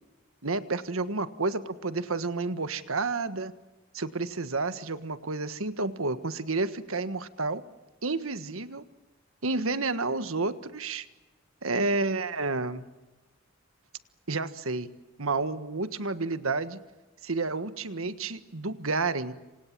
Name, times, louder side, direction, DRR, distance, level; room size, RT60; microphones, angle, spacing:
voice 1, 0.4-3.5 3.9-7.6 8.0-8.8 9.4-11.1 11.6-12.9 14.3-14.9 15.2-16.8 17.2-19.3, right 3 dB, 80° right, 12 dB, 1.5 m, -30 dB
27.5 x 27.0 x 7.5 m, 1.1 s
head